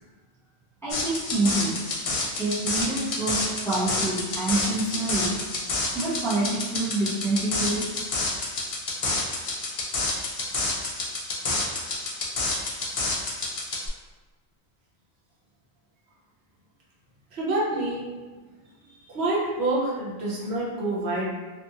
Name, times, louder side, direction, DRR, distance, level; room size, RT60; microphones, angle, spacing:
voice 1, 0.8-1.7 2.4-5.3 5.9-7.9, right 2 dB, 5° left, -8 dB, 0.5 m, -27 dB
sound 1, 0.9-13.9, left 3 dB, 55° left, 0.3 m, -29 dB
voice 2, 17.3-18.1 18.8-21.3, right 2 dB, 75° right, -6 dB, 1.0 m, -27 dB
2.5 x 2.4 x 2.7 m, 1.3 s
omnidirectional pair, 1.1 m